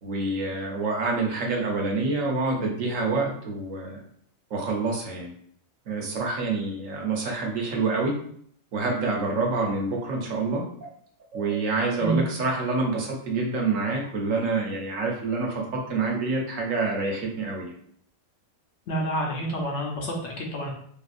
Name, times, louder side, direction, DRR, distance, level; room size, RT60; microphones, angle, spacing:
voice 1, 0.0-4.0 4.5-5.3 5.9-8.2 8.7-10.7 11.3-17.7, right 3 dB, 75° right, -1 dB, 1.1 m, -27 dB
voice 2, 18.9-20.7, right 1 dB, 65° left, 0 dB, 0.9 m, -28 dB
3.5 x 2.6 x 2.5 m, 0.63 s
omnidirectional pair, 1.4 m